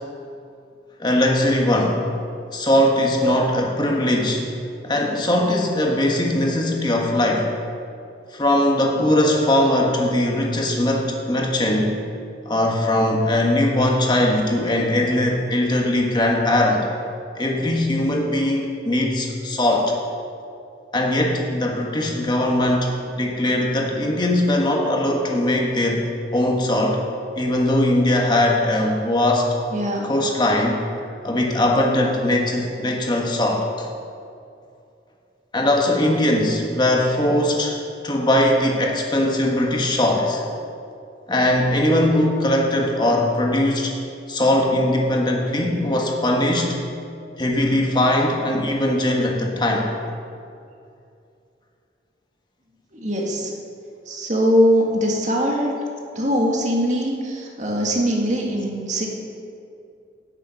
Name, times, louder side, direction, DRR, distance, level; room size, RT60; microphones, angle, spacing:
voice 1, 1.0-2.0 2.5-4.5 4.8-7.5 8.3-12.0 12.4-16.9 17.4-20.0 20.9-27.0 27.3-29.5 30.0-30.8 31.2-33.9 35.5-40.4 41.3-44.0 44.3-46.8 47.4-49.9, left 1 dB, 25° left, 0 dB, 1.4 m, -20 dB
voice 2, 29.7-30.1 52.9-53.5 54.1-55.7 56.2-59.1, equal, 40° right, -1 dB, 1.9 m, -21 dB
16.0 x 6.9 x 5.7 m, 2.5 s
head